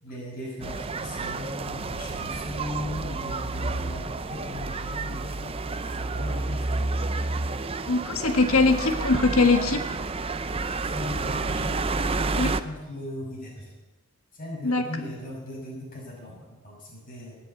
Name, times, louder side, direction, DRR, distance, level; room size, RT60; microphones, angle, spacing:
voice 1, 0.0-7.0 10.9-11.8 12.6-13.7 14.3-17.3, left 1 dB, 40° left, -3 dB, 6.5 m, -38 dB
sound 1, 0.6-12.6, right 3 dB, 25° right, 0.5 m, -30 dB
voice 2, 7.9-10.0 12.4-12.6 14.6-14.8, left 3 dB, 80° left, 6 dB, 1.5 m, -22 dB
19.5 x 8.0 x 8.3 m, 1.2 s
head